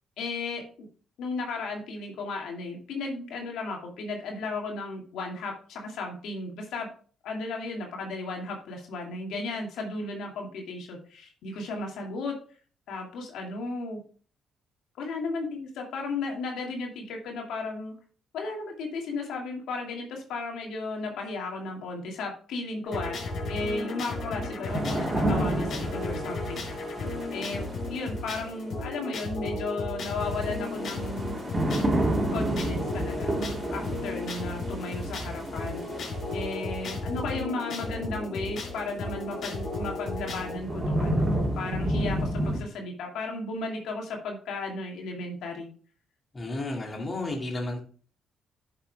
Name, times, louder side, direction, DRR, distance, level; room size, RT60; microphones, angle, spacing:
voice 1, 0.2-0.9 1.2-6.9 7.2-12.4 12.9-14.0 15.0-17.9 18.3-23.2 23.5-26.8 27.3-27.6 27.9-31.4 32.3-33.3 33.7-45.7, left 3 dB, 80° left, 2.4 m, -35 dB
sound 1, 22.8-40.6, left 2 dB, 60° left, 4.9 m, -34 dB
sound 2, 24.6-27.8 30.1-36.4 39.1-39.2 39.8-42.6, right 1 dB, 25° right, 3.3 m, -30 dB
voice 2, 46.3-47.8, left 2 dB, 25° left, 2.5 m, -32 dB
10.5 x 6.8 x 3.5 m
cardioid pair, 90°, 0 cm